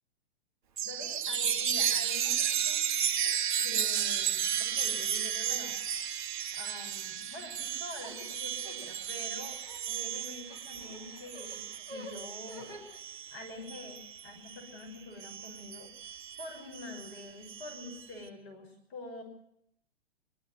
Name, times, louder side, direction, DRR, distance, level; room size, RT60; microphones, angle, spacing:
voice 1, 0.8-2.9 3.6-5.8 6.5-9.6 9.9-12.8 13.3-15.9 16.4-19.2, left 2 dB, 30° left, 1 dB, 6.1 m, -46 dB
Chime, 0.8-14.7 15.2-18.0, right 9 dB, 50° right, 1.7 m, -33 dB
sound 1, 8.0-13.0, equal, 10° left, 7.3 m, -50 dB
25.0 x 13.5 x 9.6 m, 0.73 s
figure-of-eight pair, 110°, 32 cm